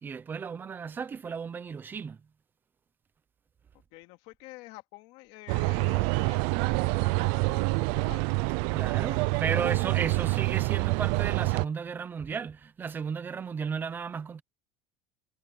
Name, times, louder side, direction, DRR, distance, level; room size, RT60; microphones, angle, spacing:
voice 1, 0.0-2.2 8.7-14.4, right 6 dB, 15° right, 0.8 m, -34 dB
voice 2, 3.7-8.4 8.9-10.2, left 20 dB, 55° left, 2.8 m, -49 dB
sound 1, 5.5-11.6, right 25 dB, 60° right, 0.5 m, -27 dB
cardioid pair, 180°, 13 cm